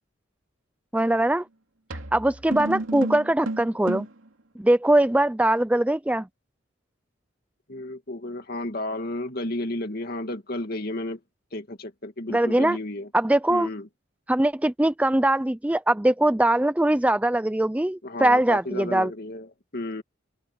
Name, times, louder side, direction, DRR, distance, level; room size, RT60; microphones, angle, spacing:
voice 1, 0.9-1.4 2.1-4.1 4.6-6.3 12.3-12.8 13.1-13.7 14.3-19.1, right 1 dB, 5° right, 0.4 m, -21 dB
sound 1, 1.1-1.2 1.9-4.3, right 2 dB, 85° right, 2.6 m, -32 dB
voice 2, 7.7-11.2 11.5-13.1 13.5-13.9 18.0-20.0, left 1 dB, 50° left, 2.4 m, -32 dB
open air
head